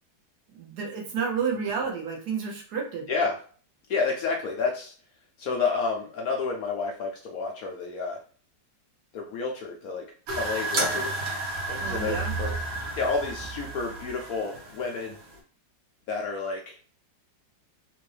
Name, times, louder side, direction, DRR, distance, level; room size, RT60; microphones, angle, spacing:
voice 1, 0.5-3.1 11.8-12.3, right 5 dB, 65° right, 0 dB, 1.3 m, -30 dB
voice 2, 3.9-4.9 5.4-8.2 9.1-10.1 10.3-11.1 11.7-12.6 12.9-15.2 16.1-16.8, left 4 dB, 65° left, 1 dB, 0.9 m, -30 dB
sound 1, 10.3-15.4, right 2 dB, 80° right, 1.7 m, -32 dB
3.7 x 2.6 x 3.2 m, 0.42 s
omnidirectional pair, 1.9 m